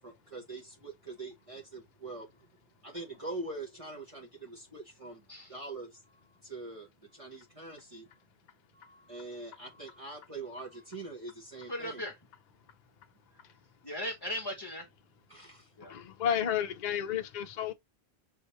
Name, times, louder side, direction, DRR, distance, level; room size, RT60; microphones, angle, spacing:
voice 1, 0.0-2.3 2.8-6.0 6.4-8.1 9.1-12.0 15.3-15.7, right 2 dB, 30° right, 1.3 m, -43 dB
voice 2, 8.7-9.2 9.7-10.1 11.6-12.2 13.8-14.9 15.8-16.0, equal, 25° left, 0.9 m, -39 dB
voice 3, 15.8-17.7, left 9 dB, 50° left, 0.6 m, -32 dB
5.6 x 2.9 x 3.2 m
omnidirectional pair, 1.1 m